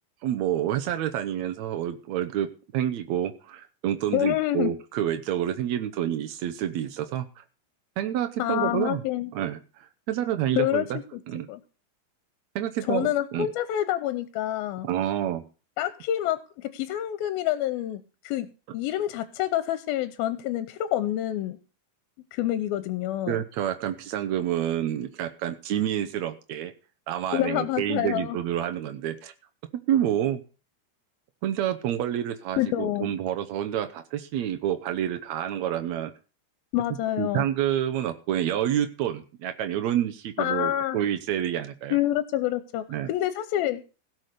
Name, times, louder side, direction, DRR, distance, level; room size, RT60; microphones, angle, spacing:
voice 1, 0.2-2.5 2.7-7.4 8.0-9.0 9.3-11.0 11.3-11.5 12.5-13.5 14.8-15.4 23.3-26.7 27.1-29.3 29.9-30.4 31.4-36.1 37.2-42.0 42.9-43.1, right 11 dB, 90° right, 7 dB, 1.5 m, -28 dB
voice 2, 4.1-4.7 8.4-9.3 10.6-10.9 11.1-11.2 11.5-11.6 12.9-14.9 15.8-21.6 22.3-23.4 27.3-28.4 32.6-33.1 36.7-37.5 40.4-41.0 41.9-43.8, left 13 dB, 80° left, 13 dB, 2.5 m, -27 dB
16.5 x 6.2 x 6.6 m, 0.35 s
omnidirectional pair, 4.4 m